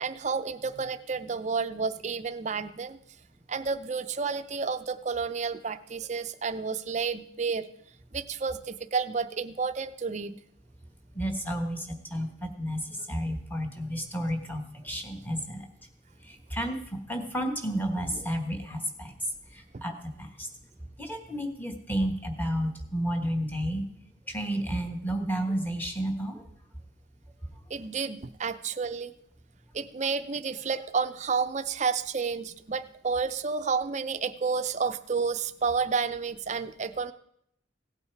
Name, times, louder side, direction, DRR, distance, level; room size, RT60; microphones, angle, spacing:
voice 1, 0.0-3.0 3.5-7.7 8.1-10.4 19.7-19.8 27.7-29.1 29.7-37.1, right 5 dB, 35° right, 12 dB, 0.5 m, -30 dB
voice 2, 11.1-15.7 16.3-19.1 19.5-20.5 21.0-23.8 24.3-26.5, equal, 10° left, 4 dB, 1.3 m, -31 dB
16.5 x 8.6 x 4.6 m, 0.72 s
head